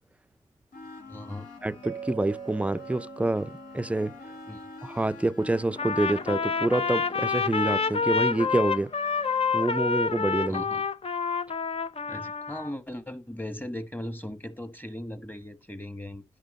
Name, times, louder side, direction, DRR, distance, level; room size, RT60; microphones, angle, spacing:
sound 1, 0.7-9.6, left 3 dB, 85° left, 1.8 m, -47 dB
voice 1, 1.1-1.5 4.5-4.7 10.5-10.8 12.1-16.2, left 1 dB, 15° left, 1.2 m, -38 dB
voice 2, 1.6-4.1 4.8-8.9 9.5-10.6, right 2 dB, 10° right, 0.4 m, -27 dB
Mallet percussion, 1.8-4.8, right 8 dB, 75° right, 0.4 m, -43 dB
Trumpet, 5.8-12.7, left 5 dB, 50° left, 0.6 m, -28 dB
10.5 x 4.6 x 5.4 m
cardioid pair, 55°, 13 cm